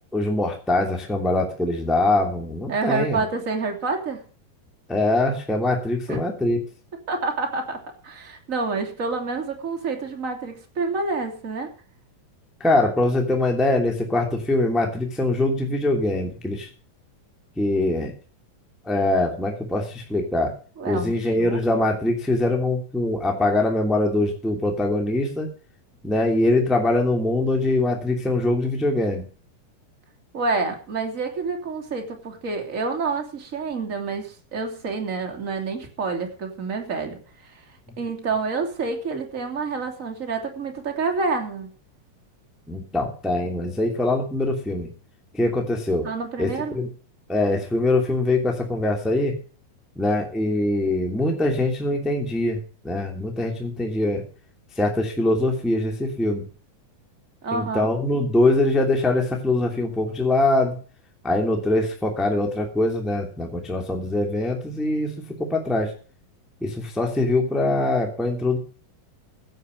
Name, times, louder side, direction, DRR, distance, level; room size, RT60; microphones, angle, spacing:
voice 1, 0.1-3.2 4.9-6.6 12.6-16.7 17.6-18.1 18.8-20.5 20.8-25.5 26.0-29.2 42.7-44.9 45.3-46.1 46.4-46.9 47.3-49.4 50.0-54.2 54.8-56.4 57.5-60.8 61.2-65.1 65.4-65.9 66.6-68.6, left 2 dB, ahead, 2 dB, 2.1 m, -23 dB
voice 2, 2.7-4.2 6.1-6.2 7.1-11.7 20.8-21.9 30.3-41.7 46.0-46.8 57.4-57.9, right 4 dB, 25° right, 4 dB, 2.9 m, -28 dB
16.0 x 7.4 x 6.8 m, 0.39 s
omnidirectional pair, 4.1 m